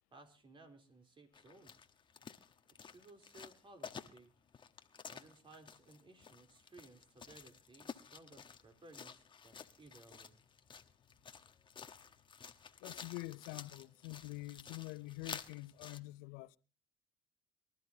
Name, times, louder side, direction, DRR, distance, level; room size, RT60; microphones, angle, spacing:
voice 1, 0.1-1.9 2.8-4.3 5.0-10.4, right 2 dB, 35° right, 3.7 m, -60 dB
sound 1, 1.3-16.0, left 6 dB, 30° left, 1.2 m, -52 dB
voice 2, 12.8-16.6, left 21 dB, 75° left, 0.6 m, -46 dB
23.5 x 13.0 x 2.8 m
supercardioid pair, 75°, 15 cm